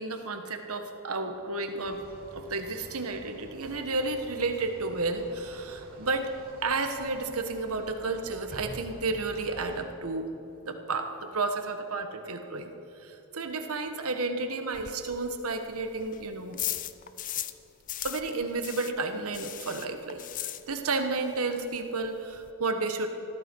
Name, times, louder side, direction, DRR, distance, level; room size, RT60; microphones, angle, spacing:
voice 1, 0.0-2.0 2.3-6.3 6.6-10.3 10.7-12.7 13.0-16.6 18.0-23.1, right 3 dB, 75° right, 6 dB, 1.3 m, -32 dB
sound 1, 1.8-9.9, equal, 40° right, 2.4 m, -48 dB
Spraying an air freshener, 14.7-17.6 17.9-21.1 21.3-21.4 21.8-21.9 22.0-22.5, left 13 dB, 35° left, 0.5 m, -37 dB
21.0 x 14.5 x 4.6 m, 3.0 s
head